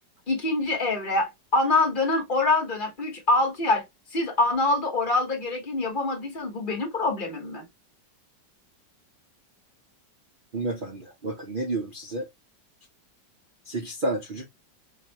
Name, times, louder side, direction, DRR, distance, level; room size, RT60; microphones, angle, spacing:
voice 1, 0.3-3.8 4.1-7.6, left 2 dB, 30° left, 1.2 m, -25 dB
voice 2, 10.5-12.3 13.7-14.5, right 2 dB, 80° right, 0.4 m, -30 dB
4.0 x 2.7 x 2.7 m
omnidirectional pair, 1.9 m